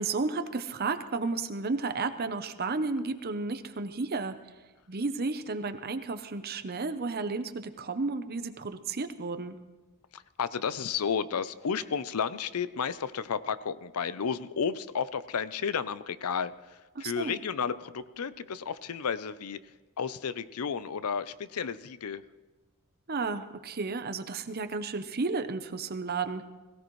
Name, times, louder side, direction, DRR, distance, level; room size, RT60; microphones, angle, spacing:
voice 1, 0.0-4.3 4.9-9.5 17.0-17.4 23.1-26.4, right 3 dB, 45° right, 9 dB, 0.8 m, -32 dB
voice 2, 10.1-22.2, left 6 dB, 80° left, 15 dB, 0.6 m, -32 dB
21.5 x 16.0 x 3.2 m, 1.2 s
head